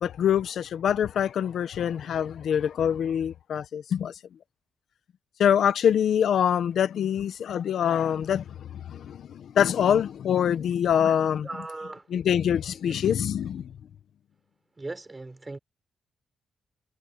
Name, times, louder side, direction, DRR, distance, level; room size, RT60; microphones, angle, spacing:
voice 1, 0.0-4.1 5.4-11.5 12.1-13.7, left 9 dB, 75° left, 0.8 m, -25 dB
voice 2, 11.4-12.1 14.8-15.6, right 2 dB, 20° right, 4.3 m, -38 dB
wide cardioid pair, 125°, 0 cm